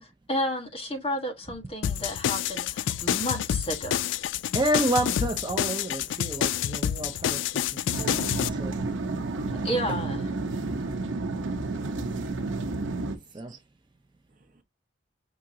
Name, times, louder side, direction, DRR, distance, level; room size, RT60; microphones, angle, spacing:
voice 1, 0.0-4.0 9.6-10.2, equal, 30° left, 1.3 m, -31 dB
sound 1, 1.8-8.5, left 9 dB, 70° left, 0.3 m, -28 dB
voice 2, 4.5-8.8 10.8-11.0 13.3-13.6, right 1 dB, 25° right, 0.5 m, -30 dB
sound 2, 7.9-13.2, right 3 dB, 80° right, 0.8 m, -31 dB
voice 3, 11.8-12.3 12.6-13.6 14.4-14.6, right 5 dB, 45° right, 0.8 m, -58 dB
6.0 x 2.8 x 2.6 m
head